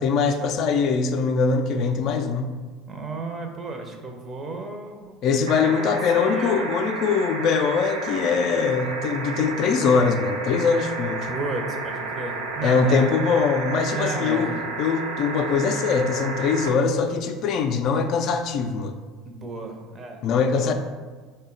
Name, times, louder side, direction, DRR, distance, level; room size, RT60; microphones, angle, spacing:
voice 1, 0.0-2.5 5.2-11.3 12.6-14.5 14.8-18.9 20.2-20.7, left 5 dB, 55° left, 6 dB, 0.3 m, -22 dB
voice 2, 2.9-6.7 11.3-13.1 13.9-14.7 19.3-20.7, right 3 dB, 35° right, 4 dB, 0.6 m, -34 dB
sound 1, 5.5-16.7 18.1-18.2, right 3 dB, 85° right, 0.5 m, -32 dB
3.9 x 2.2 x 3.8 m, 1.5 s
hypercardioid pair, 75°, 0 cm